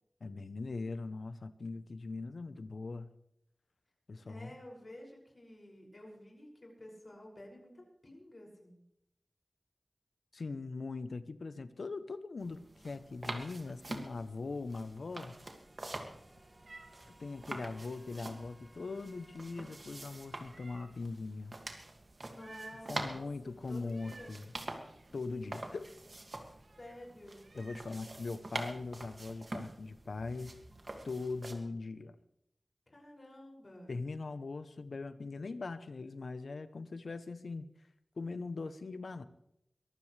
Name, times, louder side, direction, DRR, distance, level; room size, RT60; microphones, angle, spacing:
voice 1, 0.2-3.1 4.1-4.6 10.3-15.4 17.1-21.6 22.9-24.5 25.1-25.9 27.5-30.6 31.0-32.2 33.9-37.6 38.2-39.2, left 3 dB, 90° left, 0.8 m, -41 dB
voice 2, 4.3-8.8 22.3-24.3 26.8-27.5 32.9-33.9, left 1 dB, 55° left, 6.4 m, -52 dB
sound 1, 12.4-31.5, right 2 dB, 60° right, 2.2 m, -46 dB
sound 2, 14.8-20.8, right 1 dB, 30° right, 3.1 m, -63 dB
Meow, 15.9-28.0, right 3 dB, 80° right, 1.8 m, -59 dB
23.0 x 14.5 x 3.3 m
wide cardioid pair, 45°, 0 cm